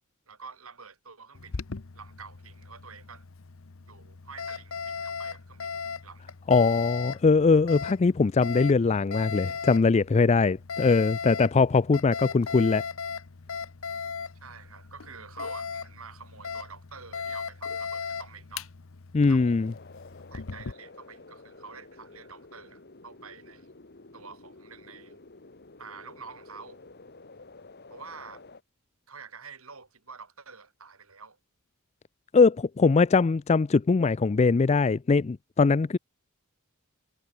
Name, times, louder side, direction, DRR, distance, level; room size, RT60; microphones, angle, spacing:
voice 1, 0.3-1.6 1.9-3.2 3.8-6.4 14.4-18.7 19.3-19.6 20.3-23.7 24.1-25.2 25.8-26.8 27.9-28.4 29.1-31.4, right 5 dB, 80° right, 6.1 m, -47 dB
Alarm, 1.4-20.7, left 6 dB, 70° left, 0.8 m, -38 dB
voice 2, 6.5-12.8 19.1-19.7 32.3-36.0, left 4 dB, 30° left, 0.4 m, -21 dB
sound 1, 19.4-28.6, left 3 dB, 50° left, 1.6 m, -50 dB
head